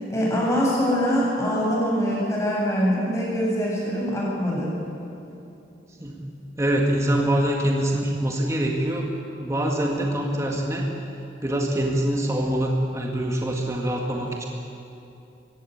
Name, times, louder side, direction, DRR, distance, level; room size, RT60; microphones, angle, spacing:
voice 1, 0.1-4.7, equal, 15° left, -5 dB, 7.8 m, -23 dB
voice 2, 6.6-10.9 11.4-14.5, right 1 dB, 15° right, -1 dB, 2.0 m, -24 dB
23.5 x 16.5 x 9.5 m, 2.8 s
head